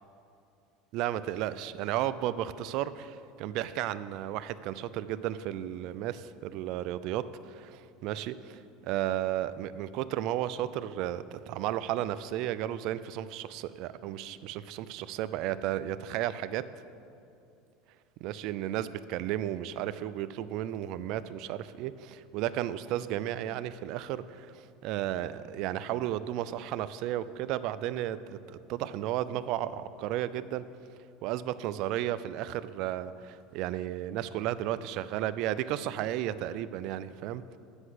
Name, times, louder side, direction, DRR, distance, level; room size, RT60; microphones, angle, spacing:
voice 1, 0.9-16.6 18.2-30.6 31.2-37.6, right 12 dB, 60° right, 14 dB, 0.4 m, -33 dB
8.0 x 5.9 x 7.9 m, 2.5 s
hypercardioid pair, 95°, 0 cm